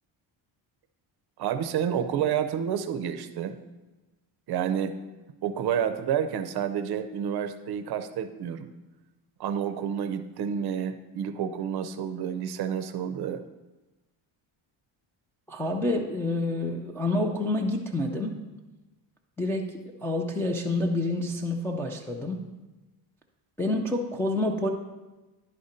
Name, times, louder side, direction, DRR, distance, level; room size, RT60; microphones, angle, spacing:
voice 1, 1.4-3.6 4.5-4.9 5.4-8.7 9.4-13.4, right 8 dB, 55° right, 10 dB, 0.6 m, -29 dB
voice 2, 15.5-18.4 19.4-22.4 23.6-24.7, left 2 dB, 5° left, -1 dB, 0.3 m, -28 dB
10.5 x 4.1 x 5.0 m, 1.1 s
cardioid pair, 155°, 48 cm